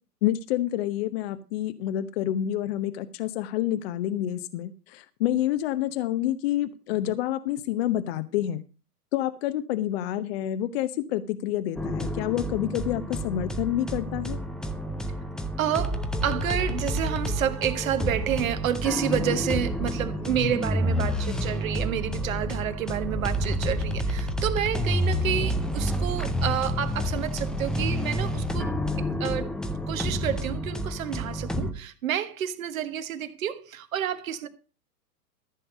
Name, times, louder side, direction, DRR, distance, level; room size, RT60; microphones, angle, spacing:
voice 1, 0.2-8.6 9.1-14.4, left 12 dB, 40° left, 0.9 m, -28 dB
sound 1, 11.8-31.7, equal, ahead, 0.5 m, -29 dB
voice 2, 15.6-28.7 29.0-29.5 29.9-34.5, right 10 dB, 60° right, 1.6 m, -29 dB
14.0 x 6.8 x 5.2 m
figure-of-eight pair, 110°, 46 cm